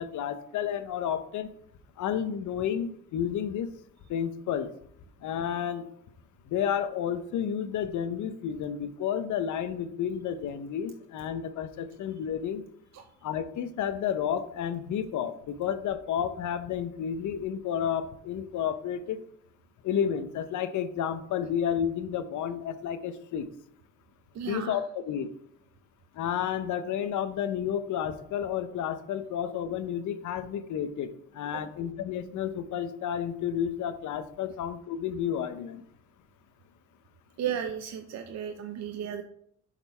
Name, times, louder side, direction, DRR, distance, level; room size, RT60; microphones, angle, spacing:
voice 1, 0.0-1.5 2.0-3.7 4.1-4.7 5.2-5.8 6.5-12.6 13.2-19.2 19.8-23.5 24.5-25.3 26.1-35.8, left 9 dB, 75° left, 10 dB, 0.8 m, -31 dB
voice 2, 24.3-24.8 31.5-31.6 37.4-39.2, right 9 dB, 60° right, 5 dB, 0.7 m, -34 dB
7.1 x 4.2 x 5.4 m, 0.69 s
cardioid pair, 90°, 30 cm